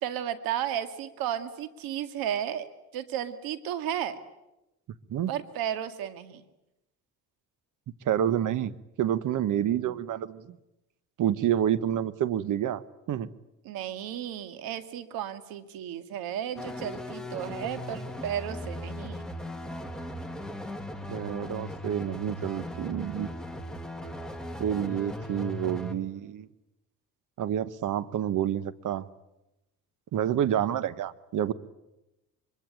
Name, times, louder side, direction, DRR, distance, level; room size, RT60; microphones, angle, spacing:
voice 1, 0.0-2.7 2.9-4.2 5.3-6.4 13.6-19.3, right 10 dB, 85° right, 10 dB, 2.2 m, -33 dB
voice 2, 8.0-10.6 11.2-12.8 13.1-13.3 21.1-23.3 24.6-26.5 27.4-29.1 30.1-31.5, right 10 dB, 60° right, 16 dB, 1.3 m, -28 dB
sound 1, 16.6-25.9, left 1 dB, ahead, 2.3 m, -38 dB
24.0 x 23.5 x 9.1 m, 0.94 s
cardioid pair, 105°, 35 cm